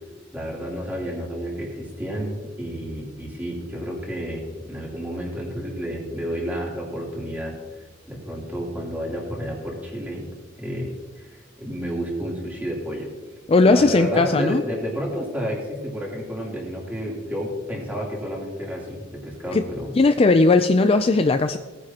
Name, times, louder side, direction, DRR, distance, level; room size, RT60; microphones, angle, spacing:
voice 1, 0.3-7.5 8.1-10.3 10.6-13.1 13.6-19.9, equal, 10° right, -3 dB, 3.2 m, -30 dB
voice 2, 13.5-14.6 19.5-19.7 19.9-21.6, left 3 dB, 30° left, 8 dB, 0.4 m, -17 dB
18.0 x 9.9 x 2.9 m, 1.3 s
head